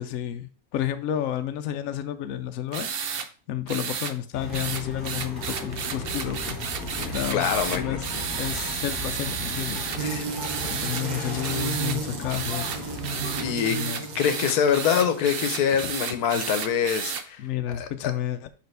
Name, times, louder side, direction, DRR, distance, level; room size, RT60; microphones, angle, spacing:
voice 1, 0.0-3.2 3.5-6.6 7.0-10.2 10.7-12.7 13.7-14.0 15.8-15.9 17.4-18.5, left 11 dB, 70° left, 1.0 m, -31 dB
sound 1, 2.7-3.3 3.7-4.1 4.5-10.0 10.4-11.0 11.4-12.0 12.3-17.2, right 7 dB, 55° right, 0.6 m, -32 dB
sound 2, 4.3-13.5, left 1 dB, 15° left, 1.8 m, -36 dB
voice 2, 7.3-8.0 9.9-10.2 13.4-13.8 14.2-17.4 17.7-18.1, left 8 dB, 85° left, 1.4 m, -24 dB
sound 3, 10.0-16.0, right 5 dB, 75° right, 1.5 m, -34 dB
6.7 x 5.1 x 3.3 m
omnidirectional pair, 1.6 m